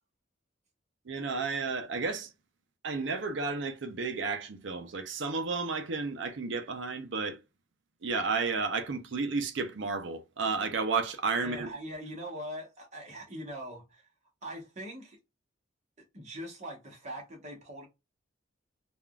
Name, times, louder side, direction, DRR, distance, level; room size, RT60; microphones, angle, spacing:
voice 1, 1.1-2.3 2.8-7.4 8.0-11.7, right 4 dB, 65° right, 0.6 m, -32 dB
voice 2, 11.4-14.1 14.4-15.2 16.1-17.9, equal, 35° right, 1.1 m, -42 dB
3.5 x 2.4 x 2.2 m
head